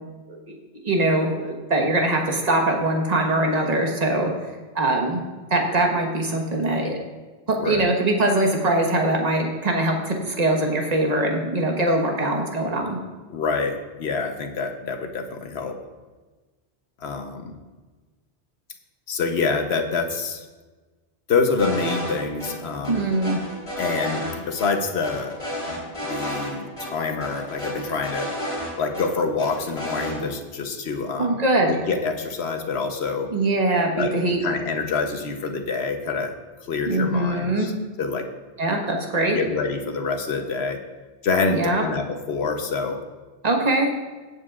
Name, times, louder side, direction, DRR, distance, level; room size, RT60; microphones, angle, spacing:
voice 1, 0.8-4.3 4.7-5.2 5.5-7.0 7.5-13.0 22.9-23.4 31.2-31.7 33.3-34.4 36.9-37.7 38.6-39.4 41.5-41.8 43.4-43.9, right 2 dB, 40° right, 1 dB, 1.4 m, -22 dB
voice 2, 7.6-7.9 13.3-15.8 17.0-17.6 19.1-20.4 21.3-23.1 23.8-25.4 26.1-28.3 28.8-31.4 31.7-33.3 33.9-36.3 36.7-37.7 38.0-38.3 39.3-40.8 41.2-43.0, left 4 dB, 75° left, 5 dB, 1.2 m, -26 dB
sound 1, 21.6-22.1 22.4-22.5 22.8-24.3 24.6-24.7 25.0-26.5 26.8-26.9 27.2-29.0 29.4-30.2, equal, 30° left, 3.7 m, -31 dB
17.0 x 8.2 x 2.4 m, 1.3 s
omnidirectional pair, 1.1 m